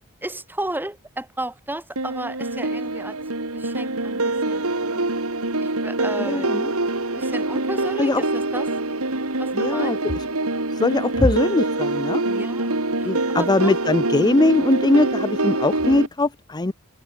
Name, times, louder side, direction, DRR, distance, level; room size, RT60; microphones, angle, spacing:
voice 1, 0.2-3.2 3.5-5.1 5.6-6.5 7.2-8.9 9.4-10.0 12.2-13.7, right 1 dB, 10° right, 3.2 m, -33 dB
sound 1, 2.0-16.1, right 2 dB, 70° right, 3.4 m, -25 dB
voice 2, 6.3-6.7 8.0-8.2 9.5-10.0 10.8-12.2 13.0-16.7, left 2 dB, 20° left, 0.6 m, -20 dB
head